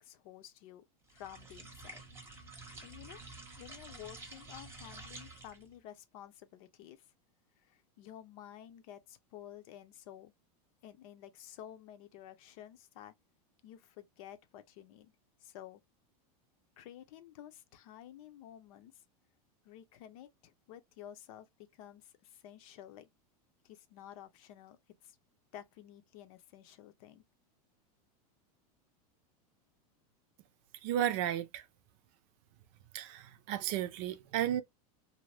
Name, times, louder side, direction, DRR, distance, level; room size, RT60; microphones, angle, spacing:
voice 1, 0.0-0.8 1.1-2.0 2.8-3.2 3.6-7.0 7.6-10.3 10.8-13.1 13.6-15.1 15.4-15.8 16.8-19.0 19.6-23.1 23.6-25.2 25.5-27.2, left 11 dB, 60° left, 0.7 m, -52 dB
sound 1, 1.1-5.7, right 2 dB, 15° right, 0.9 m, -50 dB
voice 2, 30.8-31.6 32.9-34.6, right 11 dB, 55° right, 0.6 m, -33 dB
2.7 x 2.1 x 3.3 m
supercardioid pair, 125°, 20 cm